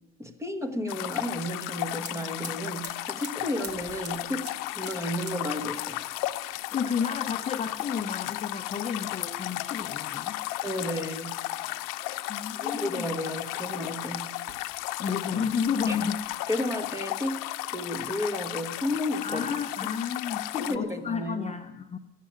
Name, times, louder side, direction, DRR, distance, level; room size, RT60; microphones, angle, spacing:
voice 1, 0.2-6.0 10.6-11.4 12.6-14.3 15.9-16.0 16.5-19.6 20.5-21.5, left 1 dB, 10° right, 8 dB, 1.1 m, -32 dB
sound 1, 0.9-20.8, left 17 dB, 85° left, 0.7 m, -34 dB
sound 2, 2.0-13.9 14.3-15.1 15.4-16.4, right 3 dB, 35° right, 1.4 m, -50 dB
voice 2, 6.5-10.4 11.6-11.9 12.3-13.1 15.0-16.2 19.2-22.0, left 6 dB, 20° left, 7 dB, 0.6 m, -32 dB
14.0 x 7.5 x 10.0 m, 0.99 s
cardioid pair, 140°, 31 cm